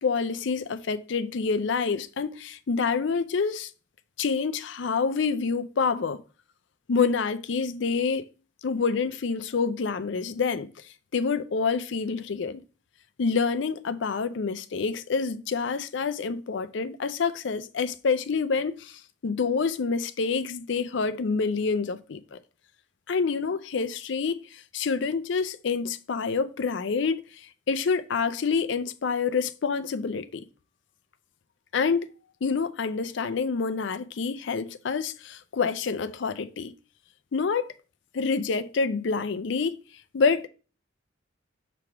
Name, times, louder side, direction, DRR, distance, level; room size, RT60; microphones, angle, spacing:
voice 1, 0.0-3.7 4.2-6.2 6.9-8.3 8.6-10.7 11.1-12.6 13.2-22.4 23.1-30.4 31.7-32.1 32.4-36.7 37.3-37.7 38.1-39.8 40.1-40.5, left 5 dB, 65° left, 0.5 m, -27 dB
5.9 x 3.4 x 5.9 m
head